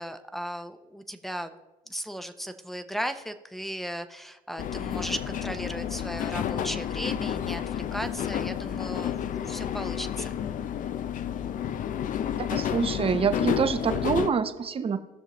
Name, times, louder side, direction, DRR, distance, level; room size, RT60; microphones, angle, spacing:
voice 1, 0.0-1.5 1.9-10.3, equal, ahead, 9 dB, 0.7 m, -36 dB
sound 1, 4.6-14.3, left 9 dB, 50° left, 0.5 m, -30 dB
voice 2, 12.4-15.0, right 6 dB, 35° right, 9 dB, 0.8 m, -26 dB
17.5 x 6.4 x 3.0 m, 1.1 s
cardioid pair, 110°, 17 cm